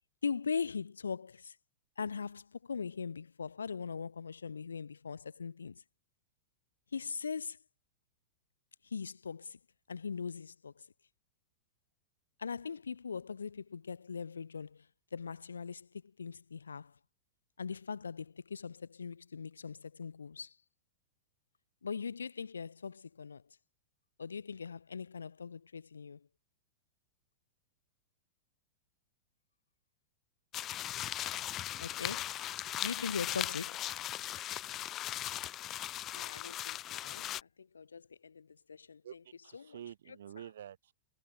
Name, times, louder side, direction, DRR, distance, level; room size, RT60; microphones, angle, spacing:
voice 1, 0.2-1.6 2.0-5.8 6.9-7.6 8.8-9.6 9.9-10.8 12.4-14.9 15.1-15.9 16.2-16.9 17.6-20.5 21.8-23.4 24.2-26.3 31.8-32.4 32.8-33.8 36.1-39.0 39.5-39.7, left 5 dB, 80° left, 0.7 m, -40 dB
sound 1, 30.5-37.4, left 13 dB, 30° left, 0.4 m, -38 dB
voice 2, 39.0-40.9, right 10 dB, 65° right, 1.3 m, -48 dB
figure-of-eight pair, 100°, 0 cm